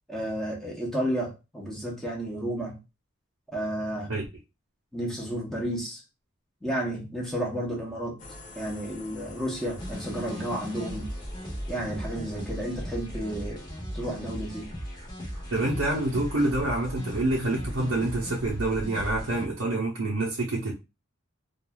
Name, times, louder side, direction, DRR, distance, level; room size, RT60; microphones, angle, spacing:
voice 1, 0.1-2.8 3.5-4.1 4.9-6.0 6.6-8.2 8.6-11.1 11.7-13.7 13.9-14.7, right 1 dB, ahead, 0.8 m, -32 dB
sound 1, 8.2-13.3, left 2 dB, 40° left, 0.5 m, -48 dB
sound 2, 9.8-19.5, equal, 20° left, 1.0 m, -37 dB
voice 2, 15.5-20.7, right 2 dB, 85° right, 0.6 m, -27 dB
3.1 x 2.3 x 2.2 m
head